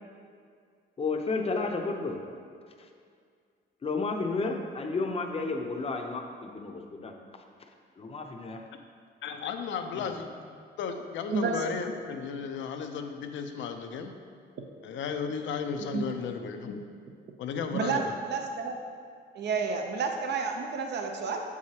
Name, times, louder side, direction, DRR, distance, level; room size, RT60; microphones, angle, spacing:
voice 1, 1.0-2.2 3.8-7.1 8.0-8.6 10.0-10.2, left 3 dB, 30° left, 3 dB, 0.6 m, -32 dB
voice 2, 9.2-14.1 14.8-16.9 17.4-18.1, left 6 dB, 75° left, 6 dB, 0.5 m, -34 dB
voice 3, 11.3-11.6 15.9-16.1 17.7-18.7 19.3-21.4, right 5 dB, 60° right, 3 dB, 0.6 m, -30 dB
7.1 x 4.8 x 2.8 m, 2.2 s
cardioid pair, 90°, 20 cm